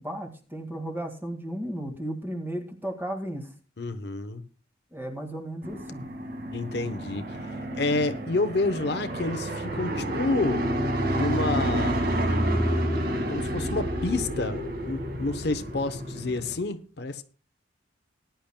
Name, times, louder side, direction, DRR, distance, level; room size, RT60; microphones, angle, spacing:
voice 1, 0.0-3.5 4.9-6.1, right 1 dB, 10° right, 1.8 m, -34 dB
voice 2, 3.8-4.5 6.5-10.6 11.1-12.0 13.3-17.2, left 2 dB, 55° left, 0.8 m, -29 dB
sound 1, 5.6-16.6, right 1 dB, 50° right, 1.9 m, -29 dB
19.5 x 10.5 x 2.2 m
head